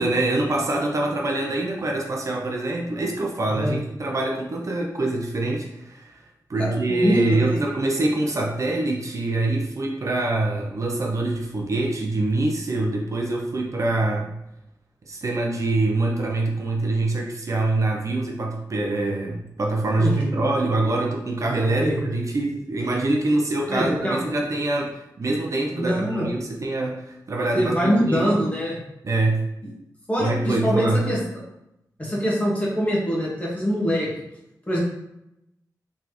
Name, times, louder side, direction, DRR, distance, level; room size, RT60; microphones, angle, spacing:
voice 1, 0.0-6.2 6.5-14.3 15.1-28.4 29.0-29.4 30.2-31.1, right 2 dB, 45° right, 0 dB, 0.5 m, -24 dB
voice 2, 6.6-7.6 20.0-20.3 21.8-22.0 23.7-24.2 25.8-26.2 27.5-28.8 30.1-31.2 32.0-34.1 34.7-34.8, equal, 20° left, -5 dB, 1.4 m, -24 dB
4.1 x 3.4 x 2.9 m, 0.85 s
wide cardioid pair, 130°, 7 cm